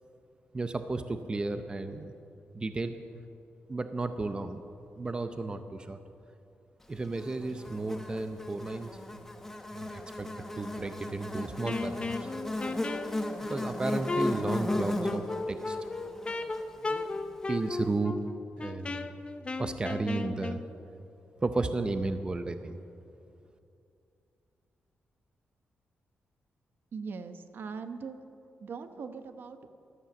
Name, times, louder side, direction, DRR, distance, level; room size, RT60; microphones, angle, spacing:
voice 1, 0.5-2.1 2.5-3.0 3.7-4.6 5.0-6.0 6.9-8.9 9.7-12.3 13.5-15.8 17.5-18.2 18.6-19.2 19.6-20.6 21.4-22.8, right 3 dB, 25° right, 9 dB, 0.6 m, -33 dB
Buzz, 7.2-17.6, left 1 dB, 10° left, 1.1 m, -37 dB
Wind instrument woodwind instrument, 11.6-20.6, left 3 dB, 30° left, 0.7 m, -35 dB
voice 2, 26.9-28.2 28.6-29.7, right 5 dB, 60° right, 9 dB, 0.9 m, -40 dB
13.5 x 13.0 x 7.2 m, 2.6 s
wide cardioid pair, 125°, 4 cm